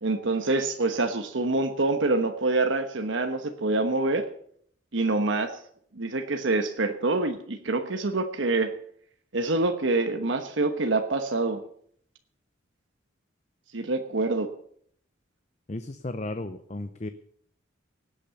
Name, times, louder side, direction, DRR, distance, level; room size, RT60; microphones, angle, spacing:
voice 1, 0.0-4.3 4.9-5.6 5.9-8.7 9.3-11.6 13.7-14.5, right 2 dB, 75° right, 6 dB, 1.1 m, -26 dB
voice 2, 15.7-17.1, left 2 dB, 35° left, 10 dB, 0.7 m, -34 dB
18.0 x 8.7 x 6.9 m, 0.63 s
head